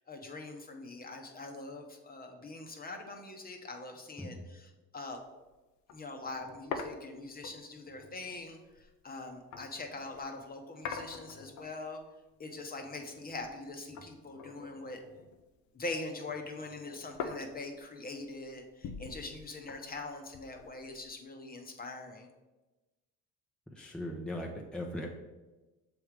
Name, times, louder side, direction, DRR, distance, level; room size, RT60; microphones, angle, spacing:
voice 1, 0.0-5.2 5.9-12.0 12.4-15.0 15.7-22.3, left 2 dB, 30° left, 3 dB, 1.1 m, -43 dB
sound 1, 5.1-5.2 5.5-5.6 5.9-10.2 10.8-12.0 12.3-13.7 13.9-15.7 16.0-21.2, left 5 dB, 65° left, 0.8 m, -45 dB
voice 2, 23.8-25.1, left 1 dB, 5° left, -1 dB, 0.8 m, -39 dB
6.9 x 3.3 x 5.1 m, 1.1 s
supercardioid pair, 90°, 32 cm